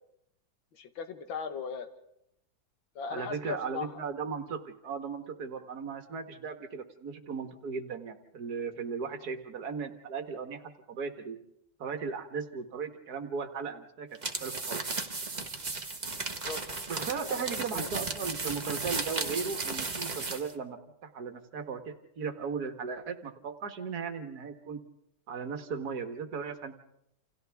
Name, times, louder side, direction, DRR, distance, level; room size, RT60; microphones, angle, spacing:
voice 1, 0.7-1.9 3.0-4.0 9.1-9.2 16.3-16.6 17.2-17.9, left 6 dB, 85° left, 8 dB, 2.0 m, -39 dB
voice 2, 3.1-10.6 10.9-11.4 11.8-14.1 14.4-14.8 16.9-24.8 25.3-26.8, right 5 dB, 55° right, 7 dB, 1.8 m, -37 dB
sound 1, 14.1-20.5, right 3 dB, 25° right, 1.2 m, -35 dB
28.5 x 28.0 x 3.5 m, 0.80 s
omnidirectional pair, 2.1 m